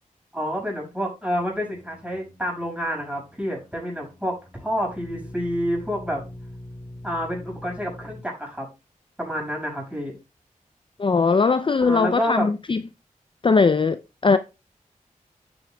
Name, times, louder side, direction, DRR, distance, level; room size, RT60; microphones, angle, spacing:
voice 1, 0.3-6.2 7.0-8.7 9.2-10.1 11.8-12.5, equal, 10° right, 5.6 m, -28 dB
sound 1, 1.3-8.2, left 1 dB, 15° left, 4.8 m, -43 dB
voice 2, 11.0-12.8 13.4-14.4, left 4 dB, 35° left, 0.4 m, -20 dB
10.5 x 8.5 x 2.2 m
cardioid pair, 50°, 14 cm